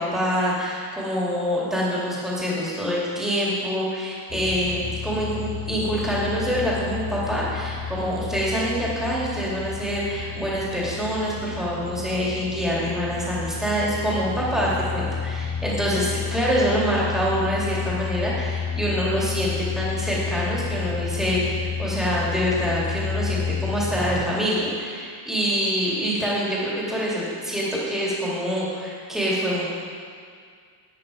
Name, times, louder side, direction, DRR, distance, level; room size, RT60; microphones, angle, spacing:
voice 1, 0.0-29.7, equal, ahead, -7 dB, 2.4 m, -25 dB
sound 1, 4.3-24.2, left 6 dB, 20° left, 0.6 m, -31 dB
11.5 x 9.1 x 4.9 m, 2.1 s
cardioid pair, 175°, 50 cm